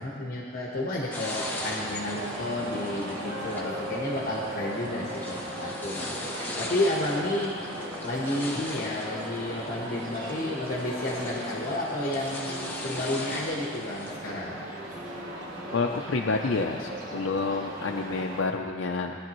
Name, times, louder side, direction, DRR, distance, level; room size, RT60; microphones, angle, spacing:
voice 1, 0.0-7.5 8.0-14.6, left 1 dB, 50° left, -3 dB, 1.2 m, -31 dB
sound 1, 1.1-14.1, left 2 dB, 10° left, 1.0 m, -40 dB
sound 2, 1.2-18.4, right 1 dB, 80° right, 2.5 m, -38 dB
sound 3, 3.2-18.5, left 1 dB, 10° right, 1.0 m, -47 dB
voice 2, 15.7-19.2, left 3 dB, 70° left, 1 dB, 0.6 m, -28 dB
19.5 x 10.5 x 3.1 m, 2.2 s
head